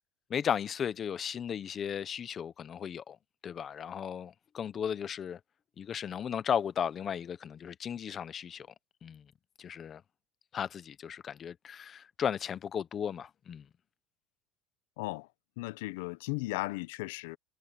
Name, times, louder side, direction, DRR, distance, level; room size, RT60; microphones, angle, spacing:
voice 1, 0.3-3.2 3.4-5.4 5.8-8.7 9.0-9.2 9.6-10.0 10.5-13.7, left 8 dB, 25° left, 0.6 m, -35 dB
voice 2, 15.0-15.3 15.6-17.4, left 22 dB, 90° left, 0.5 m, -36 dB
cardioid pair, 175°, 0 cm